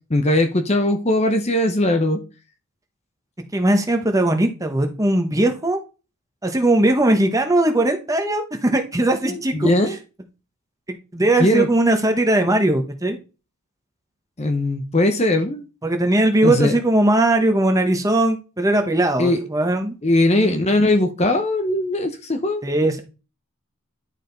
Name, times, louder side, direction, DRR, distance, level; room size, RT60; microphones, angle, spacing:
voice 1, 0.1-2.2 9.2-10.0 11.4-11.7 14.4-15.6 16.4-16.8 19.2-19.4 20.0-22.6, left 1 dB, 30° left, 0.8 m, -19 dB
voice 2, 3.5-5.8 6.4-9.7 11.1-13.2 15.8-19.9 20.3-20.8 22.6-23.0, right 1 dB, 15° right, 1.1 m, -19 dB
11.0 x 4.9 x 4.0 m
head